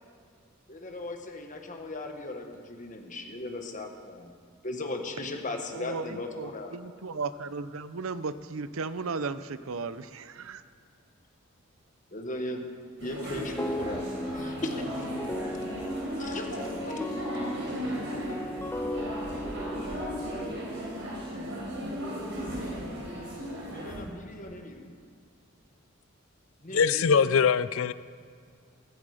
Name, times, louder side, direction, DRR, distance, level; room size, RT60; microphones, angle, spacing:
voice 1, 0.7-4.3 4.6-6.8 12.1-12.6 13.0-14.0 14.3-15.1 16.2-16.9 17.7-18.1 19.3-20.7 23.7-24.9 26.6-27.3, left 2 dB, 40° left, 1.5 m, -38 dB
voice 2, 5.7-10.6, right 4 dB, 85° right, 0.6 m, -35 dB
sound 1, 13.0-24.0, equal, 60° right, 4.6 m, -36 dB
sound 2, 13.6-20.4, left 1 dB, 10° left, 0.4 m, -36 dB
voice 3, 26.7-27.9, left 6 dB, 80° left, 0.5 m, -22 dB
15.5 x 15.0 x 5.0 m
head